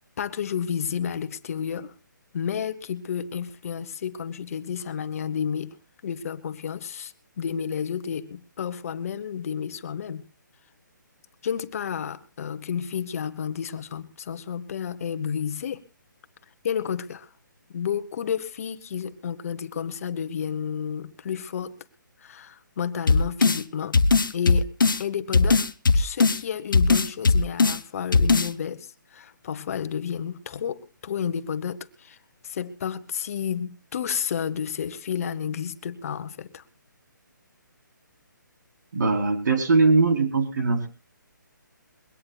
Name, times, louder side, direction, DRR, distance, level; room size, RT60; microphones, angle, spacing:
voice 1, 0.2-1.9 2.3-5.8 6.0-10.2 11.4-15.8 16.6-17.3 17.7-21.8 22.2-24.0 24.3-24.7 25.0-25.6 25.9-32.2 32.4-36.6, left 8 dB, 45° left, 1.3 m, -31 dB
sound 1, 23.1-23.6 23.9-25.0 25.3-26.4 26.7-27.8 28.1-28.5, left 4 dB, 90° left, 0.9 m, -19 dB
voice 2, 38.9-40.9, right 3 dB, 60° right, 4.0 m, -21 dB
22.5 x 17.5 x 2.4 m
hypercardioid pair, 155°, 11 cm